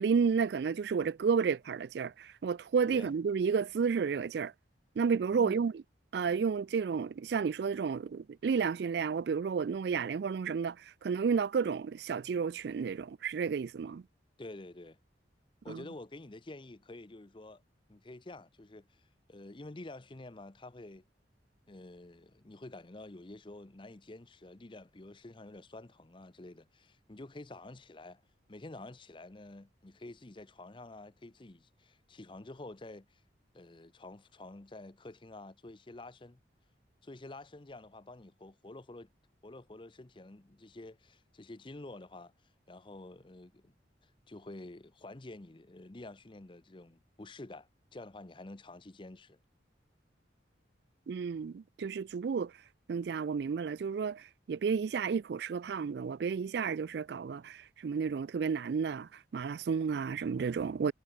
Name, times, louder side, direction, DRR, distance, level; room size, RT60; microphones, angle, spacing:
voice 1, 0.0-4.5 5.0-5.7 6.1-10.8 11.0-14.0 15.7-15.8 51.1-52.5 52.9-60.9, right 6 dB, 60° right, 0.3 m, -31 dB
voice 2, 5.3-5.7 14.4-15.0 15.6-17.6 17.9-21.0 21.7-28.2 28.5-33.2 33.5-36.4 37.0-39.1 39.4-42.3 42.7-43.8 44.0-49.4, left 2 dB, 25° left, 0.7 m, -49 dB
head